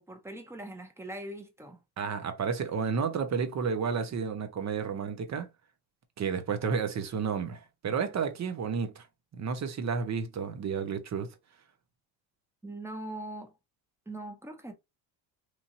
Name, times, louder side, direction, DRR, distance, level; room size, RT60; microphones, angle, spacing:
voice 1, 0.0-1.8 12.6-13.5 14.1-14.7, right 1 dB, 5° right, 0.8 m, -41 dB
voice 2, 2.0-5.5 6.2-9.1 9.3-11.3, right 6 dB, 35° right, 0.8 m, -31 dB
3.0 x 2.5 x 2.5 m
hypercardioid pair, 75°, 49 cm